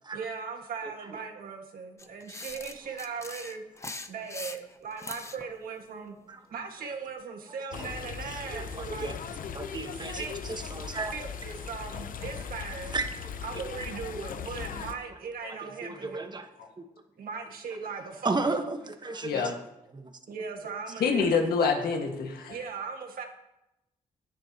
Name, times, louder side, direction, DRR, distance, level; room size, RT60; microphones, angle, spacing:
voice 1, 0.1-3.6 4.1-6.2 6.5-9.1 10.0-13.0 13.4-16.3 17.2-18.5 20.3-21.4 22.5-23.2, right 5 dB, 70° right, 3 dB, 1.8 m, -38 dB
sound 1, 2.0-5.5, left 2 dB, 20° left, 0.8 m, -41 dB
sound 2, 7.7-14.9, left 7 dB, 65° left, 0.8 m, -39 dB
voice 2, 8.5-9.2 9.5-11.1 12.9-13.1 15.6-16.5 16.8-16.9 18.2-19.5 19.9-20.1, right 3 dB, 30° right, 6 dB, 1.3 m, -33 dB
voice 3, 19.1-19.5 21.0-22.5, left 5 dB, 90° left, 3 dB, 1.8 m, -26 dB
16.0 x 10.5 x 3.0 m, 0.90 s
cardioid pair, 90°, 15 cm